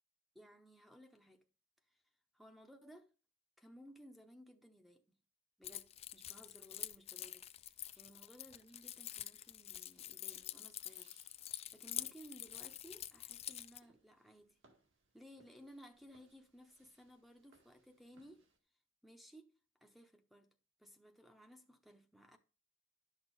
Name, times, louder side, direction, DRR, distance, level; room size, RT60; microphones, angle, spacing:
voice 1, 0.3-1.4 1.9-2.0 2.3-3.1 3.6-5.2 5.6-11.1 11.4-14.6 15.1-18.5 19.0-19.5 19.8-20.5 20.8-22.4, equal, ahead, 0.7 m, -59 dB
Keys jangling, 5.6-13.8, left 12 dB, 30° left, 0.4 m, -47 dB
sound 1, 7.9-18.6, right 2 dB, 70° right, 2.1 m, -74 dB
11.5 x 6.3 x 4.1 m
head